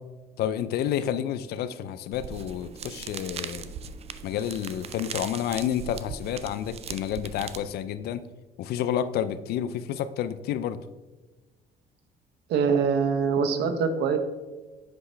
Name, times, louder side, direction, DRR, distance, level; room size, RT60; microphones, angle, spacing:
voice 1, 0.4-3.7 4.2-8.2 8.6-10.8, left 10 dB, 70° left, 13 dB, 0.4 m, -30 dB
sound 1, 2.1-7.7, right 7 dB, 40° right, 0.4 m, -39 dB
voice 2, 12.5-14.2, right 6 dB, 75° right, 8 dB, 0.8 m, -24 dB
7.9 x 5.5 x 3.3 m, 1.2 s
cardioid pair, 110°, 17 cm